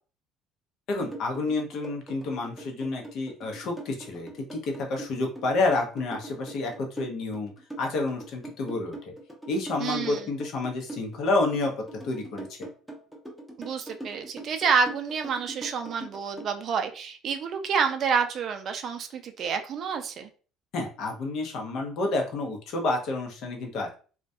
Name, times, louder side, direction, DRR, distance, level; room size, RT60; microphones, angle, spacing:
voice 1, 0.9-7.5 7.8-9.1 9.5-11.7 12.0-12.6 20.7-23.9, left 2 dB, 60° left, 2 dB, 0.7 m, -29 dB
sound 1, 1.1-16.5, right 1 dB, 5° left, 0.6 m, -41 dB
voice 2, 9.8-10.3 13.6-20.3, right 6 dB, 50° right, 6 dB, 0.4 m, -28 dB
2.3 x 2.1 x 2.5 m, 0.39 s
cardioid pair, 115°, 0 cm